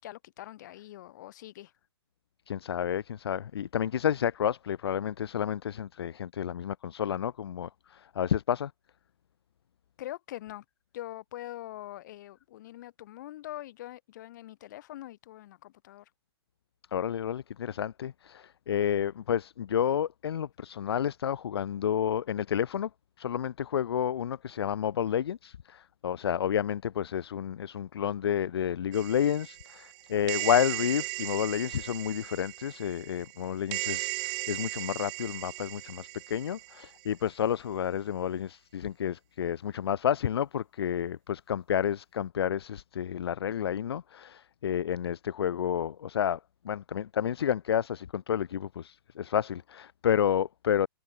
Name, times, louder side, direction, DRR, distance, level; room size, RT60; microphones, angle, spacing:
voice 1, 0.0-1.7 10.0-10.6 10.9-16.1, left 14 dB, 45° left, 5.5 m, -43 dB
voice 2, 2.5-8.7 16.9-22.9 23.2-46.4 46.6-50.9, left 9 dB, 70° left, 1.1 m, -30 dB
sound 1, 28.9-37.0, right 35 dB, 30° right, 6.7 m, -37 dB
hypercardioid pair, 155°, 14 cm